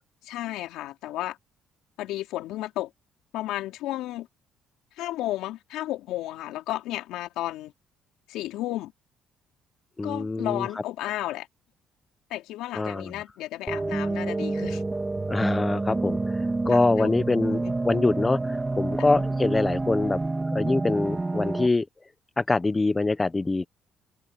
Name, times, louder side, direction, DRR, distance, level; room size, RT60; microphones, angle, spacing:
voice 1, 0.2-1.4 2.0-2.9 3.3-4.3 5.0-7.7 8.3-8.9 10.0-11.5 12.3-14.8 16.7-17.1 17.5-17.7 19.0-19.1, left 15 dB, 85° left, 4.8 m, -33 dB
voice 2, 10.0-10.7 12.7-13.1 15.3-20.2 20.5-21.8 22.4-23.7, left 3 dB, 15° left, 0.9 m, -25 dB
sound 1, 13.7-21.7, right 2 dB, 15° right, 3.5 m, -28 dB
cardioid pair, 115°, 0 cm